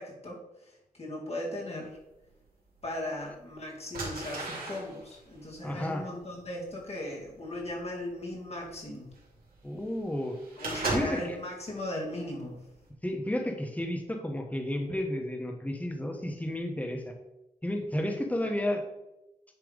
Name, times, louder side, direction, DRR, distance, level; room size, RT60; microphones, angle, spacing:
voice 1, 0.0-2.0 2.8-9.1 10.6-12.6, left 1 dB, 45° left, -3 dB, 2.5 m, -38 dB
sound 1, 2.4-2.5 3.3-3.5 3.9-11.4 11.8-12.2 12.6-12.9, right 2 dB, 80° right, 2.6 m, -37 dB
voice 2, 5.6-6.1 9.6-10.4 10.9-11.4 13.0-17.1 17.6-18.8, left 1 dB, 10° left, 3 dB, 1.3 m, -32 dB
9.8 x 3.3 x 5.2 m, 0.96 s
cardioid pair, 65°, 15 cm